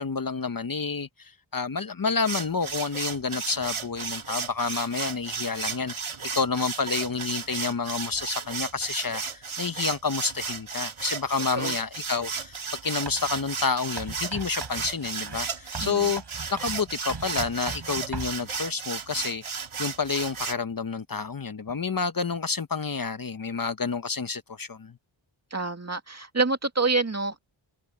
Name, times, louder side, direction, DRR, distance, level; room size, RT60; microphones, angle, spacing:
voice 1, 0.0-16.2 16.5-19.4 19.8-25.0, left 5 dB, 45° left, 0.9 m, -29 dB
sound 1, 2.2-20.5, right 5 dB, 80° right, 2.2 m, -34 dB
Writing, 13.1-13.4 14.0-18.4, right 4 dB, 55° right, 5.3 m, -39 dB
voice 2, 15.8-16.1 25.5-27.4, right 3 dB, 30° right, 2.2 m, -27 dB
wide cardioid pair, 80°, 48 cm